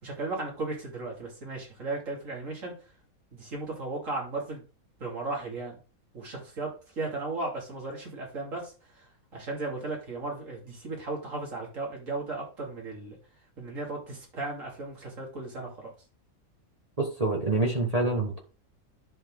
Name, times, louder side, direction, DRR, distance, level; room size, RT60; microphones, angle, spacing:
voice 1, 0.0-2.7 3.3-4.6 5.0-5.8 6.1-13.2 13.6-15.9, right 3 dB, 65° right, -1 dB, 3.1 m, -36 dB
voice 2, 17.0-18.4, right 2 dB, 30° right, -1 dB, 1.3 m, -26 dB
11.0 x 4.2 x 3.8 m, 0.34 s
omnidirectional pair, 1.5 m